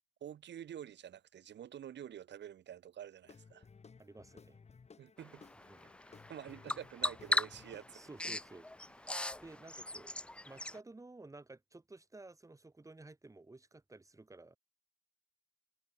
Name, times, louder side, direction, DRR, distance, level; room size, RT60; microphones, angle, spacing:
voice 1, 0.2-3.7 5.0-5.4 6.3-8.0, right 10 dB, 60° right, 2.2 m, -48 dB
Guitar / Drum, 3.2-8.8, left 5 dB, 35° left, 2.3 m, -59 dB
voice 2, 4.0-4.6 5.7-5.9 7.9-9.1 9.4-10.2 10.4-14.6, right 2 dB, 15° right, 1.9 m, -54 dB
Bird vocalization bird call bird song, 5.2-10.8, left 1 dB, 5° left, 0.4 m, -39 dB
cardioid pair, 90°, 20 cm